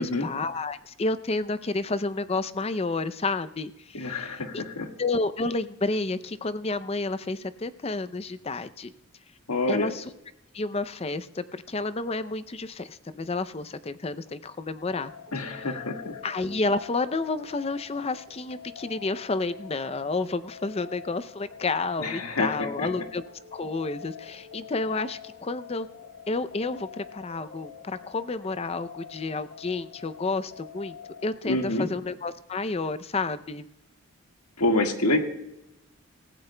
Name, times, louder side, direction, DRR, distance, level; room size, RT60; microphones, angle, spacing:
voice 1, 0.0-4.6 5.0-8.9 9.7-10.0 10.5-15.1 15.4-15.8 16.2-23.2 23.5-25.9 26.3-31.0 31.2-33.7, left 3 dB, 25° left, 14 dB, 0.4 m, -30 dB
voice 2, 3.9-4.9 9.5-9.9 15.3-16.2 22.0-22.9 31.5-31.9 34.6-35.2, left 2 dB, 90° left, 3 dB, 1.7 m, -27 dB
sound 1, 14.9-31.7, left 7 dB, 65° left, 3.4 m, -46 dB
27.0 x 15.5 x 2.2 m, 0.88 s
head